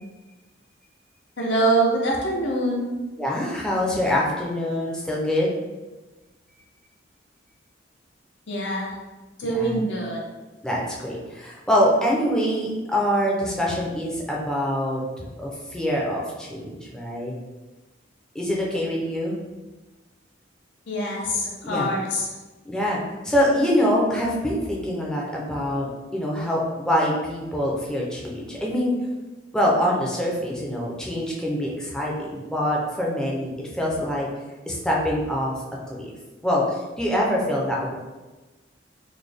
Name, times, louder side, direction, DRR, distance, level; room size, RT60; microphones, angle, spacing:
voice 1, 1.4-2.9 8.5-8.9 9.4-10.2 20.9-22.3, right 1 dB, 65° left, -2 dB, 0.7 m, -24 dB
voice 2, 3.2-5.6 9.5-9.8 10.6-17.3 18.3-19.4 21.6-21.9 22.6-25.9 26.1-28.9 29.5-34.3 34.7-35.5 35.9-36.1 36.4-37.9, equal, 5° left, -4 dB, 0.5 m, -25 dB
4.0 x 2.2 x 3.3 m, 1.2 s
head